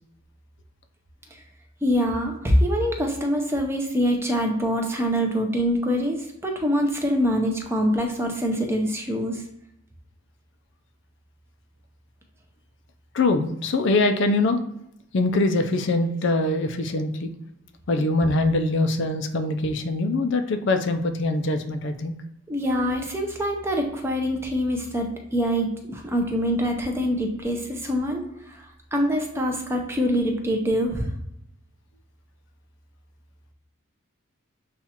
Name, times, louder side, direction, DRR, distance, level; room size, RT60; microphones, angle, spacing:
voice 1, 1.8-9.4 22.5-31.1, equal, 10° right, 2 dB, 0.6 m, -24 dB
voice 2, 13.1-14.6 15.1-17.3 17.9-22.2, left 2 dB, 55° left, 7 dB, 0.4 m, -23 dB
7.1 x 2.4 x 2.8 m, 0.82 s
head